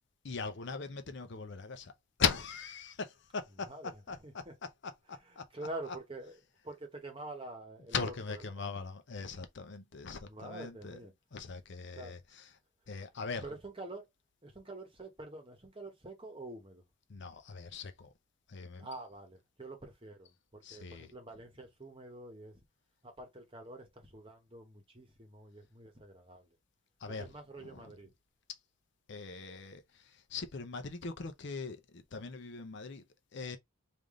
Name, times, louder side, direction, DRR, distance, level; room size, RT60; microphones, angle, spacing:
voice 1, 0.2-1.9 2.2-3.7 4.1-4.4 4.8-5.5 5.9-6.0 7.9-11.0 11.3-12.4 12.9-13.4 17.1-18.1 18.5-18.9 20.6-21.1 27.0-27.2 27.6-27.9 29.1-33.0 33.3-33.6, left 5 dB, 55° left, 0.6 m, -39 dB
voice 2, 3.7-4.5 5.2-8.9 10.2-11.1 12.0-12.1 13.4-14.1 14.4-16.8 18.8-22.6 23.0-26.5 27.1-28.1, right 2 dB, 25° right, 1.0 m, -47 dB
3.5 x 2.5 x 3.7 m
head